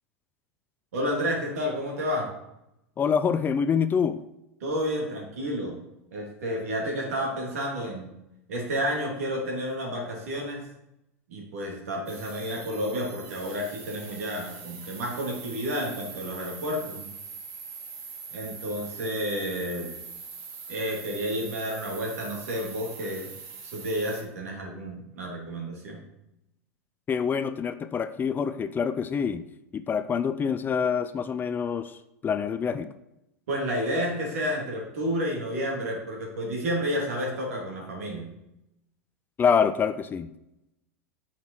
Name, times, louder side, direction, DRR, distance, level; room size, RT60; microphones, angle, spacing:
voice 1, 0.9-2.3 4.6-5.8 6.1-8.1 8.5-10.6 11.3-17.1 18.3-19.9 20.7-23.3 23.6-26.0 33.5-38.3, equal, 70° right, -1 dB, 3.1 m, -30 dB
voice 2, 3.0-4.2 27.1-29.4 29.7-32.9 39.4-40.3, left 6 dB, 25° left, 11 dB, 0.6 m, -26 dB
sound 1, 12.1-24.2, right 5 dB, 55° right, 2.1 m, -43 dB
9.2 x 5.9 x 4.7 m, 0.86 s
hypercardioid pair, 90°, 8 cm